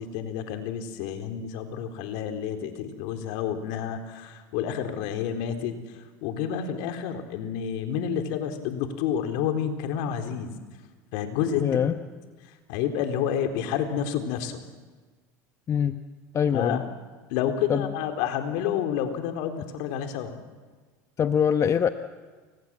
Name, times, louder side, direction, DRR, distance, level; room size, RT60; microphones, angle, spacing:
voice 1, 0.0-10.5 11.1-11.6 12.7-14.6 16.5-16.8 17.3-20.4, left 8 dB, 65° left, 6 dB, 3.8 m, -29 dB
voice 2, 11.6-12.0 15.7-16.0 16.3-16.9 17.7-18.0 21.2-21.9, left 8 dB, 35° left, 9 dB, 1.2 m, -23 dB
29.5 x 24.5 x 7.5 m, 1.4 s
hypercardioid pair, 90°, 9 cm